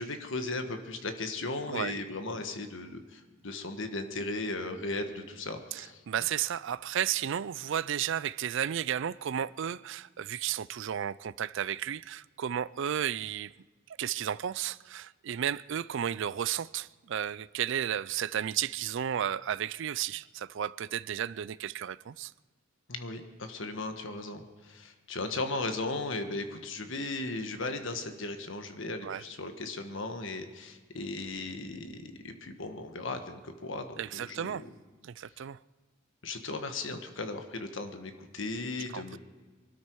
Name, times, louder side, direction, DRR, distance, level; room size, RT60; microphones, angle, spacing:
voice 1, 0.0-6.0 22.9-34.7 36.2-39.2, left 2 dB, 65° left, 1.5 m, -37 dB
voice 2, 5.7-13.5 14.0-22.3 29.0-29.2 34.0-34.6 35.0-35.6 38.9-39.0, right 9 dB, 65° right, 0.4 m, -33 dB
23.5 x 13.0 x 4.7 m
head